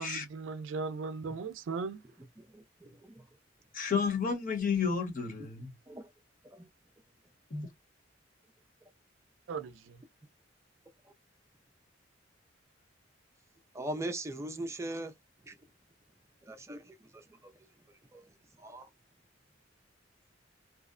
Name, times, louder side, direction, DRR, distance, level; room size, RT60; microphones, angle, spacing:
voice 1, 0.0-2.0 9.5-10.0, right 4 dB, 80° right, 0.4 m, -37 dB
voice 2, 2.4-3.2 5.9-6.1 6.5-6.7 13.7-15.1 15.4-15.6 16.4-17.7 18.1-18.3 18.6-18.9, right 1 dB, 15° right, 0.4 m, -41 dB
voice 3, 3.7-5.7 7.5-7.6, left 5 dB, 45° left, 1.0 m, -31 dB
2.7 x 2.0 x 2.4 m
head